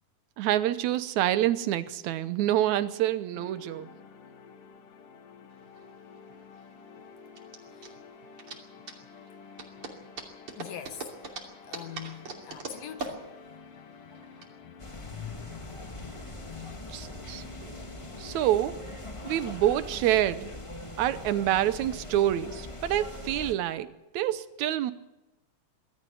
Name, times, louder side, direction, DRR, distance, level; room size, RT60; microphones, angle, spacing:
voice 1, 0.4-3.9 16.9-17.7 18.2-18.8 19.2-20.5 21.0-24.9, right 12 dB, 70° right, 2.1 m, -27 dB
sound 1, 3.3-19.9, left 5 dB, 90° left, 3.2 m, -51 dB
sound 2, 5.6-14.5, right 3 dB, 45° right, 3.5 m, -42 dB
voice 2, 10.6-11.2 11.7-17.0 20.1-20.2, left 9 dB, 65° left, 1.8 m, -45 dB
sound 3, 14.8-23.5, left 1 dB, 20° left, 0.7 m, -42 dB
22.0 x 13.0 x 9.3 m
omnidirectional pair, 3.6 m